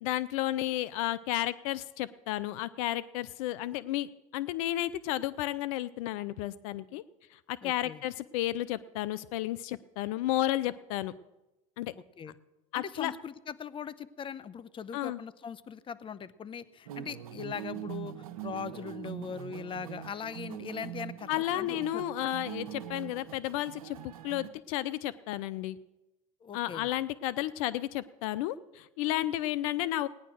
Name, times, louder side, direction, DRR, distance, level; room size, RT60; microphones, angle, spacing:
voice 1, 0.0-7.0 7.3-11.1 11.8-11.9 12.7-13.1 14.9-15.2 21.3-25.8 26.5-30.1, left 14 dB, 75° left, 18 dB, 0.6 m, -32 dB
voice 2, 7.6-8.0 12.2-12.3 12.7-18.1 18.4-22.0 26.4-26.9, left 7 dB, 30° left, 15 dB, 0.8 m, -40 dB
sound 1, 16.9-24.5, right 11 dB, 90° right, 0.9 m, -42 dB
17.5 x 10.0 x 6.3 m, 1.0 s
hypercardioid pair, 90°, 18 cm